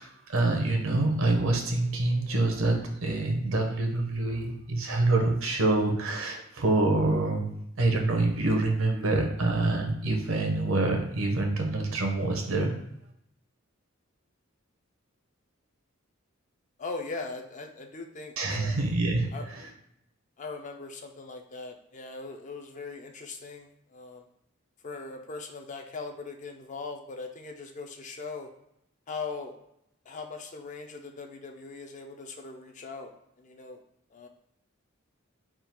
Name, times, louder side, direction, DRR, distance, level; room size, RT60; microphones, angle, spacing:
voice 1, 0.0-7.5 7.8-12.7 18.4-19.3 19.6-19.7, right 2 dB, 80° right, 3 dB, 0.8 m, -26 dB
voice 2, 16.8-18.8 19.3-19.4 20.4-24.3 24.8-28.5 29.1-29.6 30.1-33.8 34.1-34.3, left 4 dB, 35° left, 4 dB, 0.4 m, -40 dB
3.6 x 2.3 x 4.4 m, 0.77 s
head